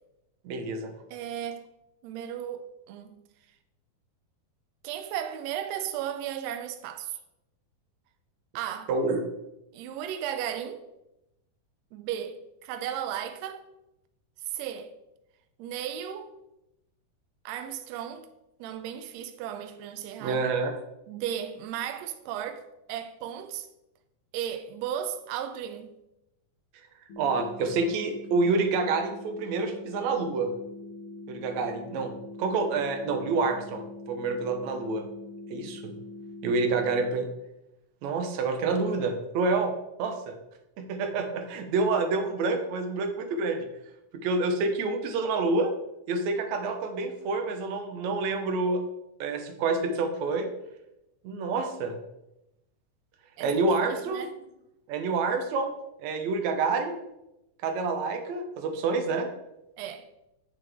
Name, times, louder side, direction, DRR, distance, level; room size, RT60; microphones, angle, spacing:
voice 1, 0.5-0.9 8.9-9.2 20.2-20.7 27.2-30.5 31.3-32.1 32.4-35.1 35.5-35.9 36.4-37.3 38.0-39.7 40.0-40.3 40.8-43.6 44.2-45.7 46.1-48.8 49.2-50.5 51.2-51.9 53.4-54.3 54.9-55.7 56.0-57.0 57.6-59.3, right 3 dB, 70° right, 2.0 m, -28 dB
voice 2, 1.1-1.7 2.0-3.2 4.8-7.2 8.5-8.9 9.7-10.9 11.9-13.6 14.5-14.9 15.6-16.3 17.4-18.3 18.6-20.5 21.1-22.6 22.9-23.7 24.3-25.9 53.4-54.3 59.8-60.1, right 10 dB, 90° right, 1.5 m, -35 dB
sound 1, 27.1-37.1, left 2 dB, 55° left, 1.7 m, -43 dB
7.7 x 7.4 x 3.5 m
omnidirectional pair, 3.7 m